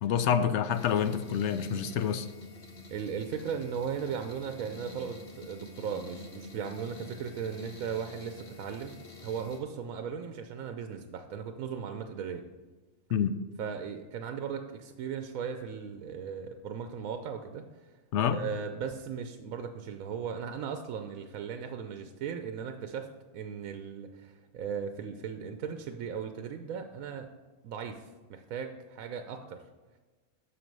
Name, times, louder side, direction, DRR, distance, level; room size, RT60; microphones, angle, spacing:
voice 1, 0.0-2.3 13.1-13.3 18.1-18.4, left 8 dB, 65° left, 11 dB, 0.8 m, -27 dB
sound 1, 0.7-9.6, left 2 dB, 45° left, 1.5 m, -48 dB
voice 2, 2.9-12.4 13.6-17.9 18.2-23.1 23.3-27.3 27.6-29.6, right 7 dB, 75° right, 7 dB, 1.0 m, -37 dB
7.8 x 6.6 x 5.3 m, 1.2 s
omnidirectional pair, 1.5 m